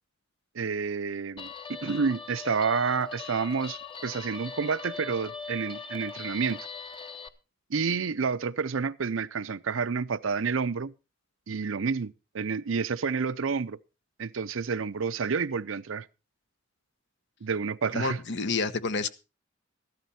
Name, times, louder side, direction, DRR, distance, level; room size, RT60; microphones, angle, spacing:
voice 1, 0.5-6.6 7.7-10.9 11.5-13.8 14.2-16.1 17.4-18.2, right 5 dB, 80° right, 0.6 m, -29 dB
Guitar, 1.4-7.3, left 5 dB, 25° left, 0.9 m, -41 dB
voice 2, 17.9-19.1, left 4 dB, 65° left, 1.1 m, -29 dB
13.5 x 12.5 x 4.3 m
head